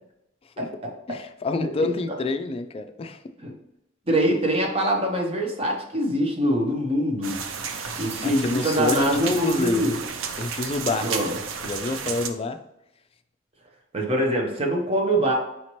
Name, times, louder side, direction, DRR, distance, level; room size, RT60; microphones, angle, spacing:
voice 1, 0.6-1.2 1.6-1.7 3.4-3.5 4.1-7.4 8.0-9.9 11.0-11.4 13.9-15.3, equal, 30° right, 0 dB, 0.9 m, -24 dB
voice 2, 1.1-3.2 7.7-9.9 10.4-11.1 11.6-12.6, left 3 dB, 30° left, 8 dB, 0.3 m, -27 dB
sound 1, 7.2-12.3, right 6 dB, 80° right, 0.5 m, -32 dB
4.9 x 2.9 x 3.0 m, 0.85 s
head